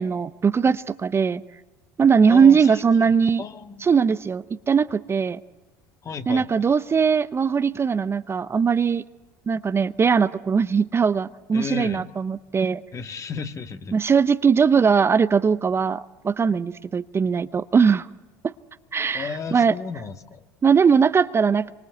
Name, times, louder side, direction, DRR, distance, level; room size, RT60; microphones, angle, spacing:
voice 1, 0.0-1.4 2.0-3.4 3.8-5.4 6.3-9.0 9.5-12.8 13.9-18.1 18.9-19.7 20.6-21.7, right 6 dB, 25° right, 12 dB, 0.8 m, -20 dB
voice 2, 2.3-3.9 6.0-6.7 11.5-12.1 12.9-14.0 19.1-20.5, left 5 dB, 35° left, 7 dB, 1.9 m, -34 dB
26.5 x 24.5 x 7.9 m, 1.2 s
hypercardioid pair, 80°, 9 cm